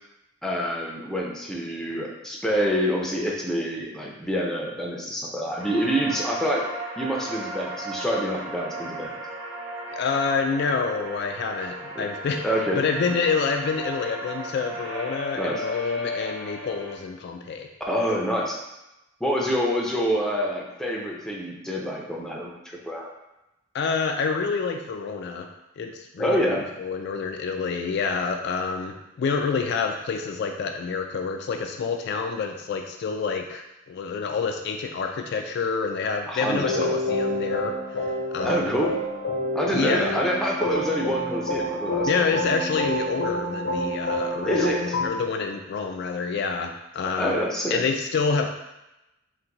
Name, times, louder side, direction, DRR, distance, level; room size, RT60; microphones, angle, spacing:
voice 1, 0.4-6.6 7.0-9.2 12.0-12.1 12.4-12.8 15.3-15.6 17.9-18.6 19.2-23.1 26.2-26.6 36.3-37.0 38.4-38.9 39.5-42.4 44.5-45.0 47.2-47.8, equal, 5° left, -3 dB, 0.5 m, -26 dB
sound 1, 5.6-17.0, equal, 90° right, 1.0 m, -35 dB
voice 2, 9.9-12.5 12.7-17.7 23.7-25.5 25.8-38.7 39.7-40.2 42.0-47.3 47.7-48.5, left 5 dB, 55° left, 4 dB, 0.3 m, -28 dB
sound 2, 36.5-45.1, left 1 dB, 75° left, 0.7 m, -28 dB
4.4 x 2.2 x 3.8 m, 0.94 s
head